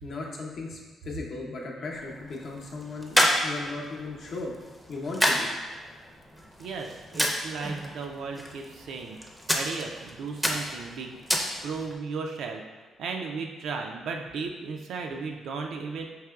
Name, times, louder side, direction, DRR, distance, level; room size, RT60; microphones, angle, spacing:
voice 1, 0.0-4.6 4.9-5.5, left 3 dB, 60° left, -2 dB, 0.7 m, -36 dB
sound 1, 1.9-11.9, equal, ahead, 0.5 m, -31 dB
voice 2, 6.6-9.2 9.5-11.1 11.6-12.6 13.0-16.1, right 4 dB, 75° right, 2 dB, 0.3 m, -35 dB
4.7 x 2.9 x 2.3 m, 1.3 s
cardioid pair, 90°, 0 cm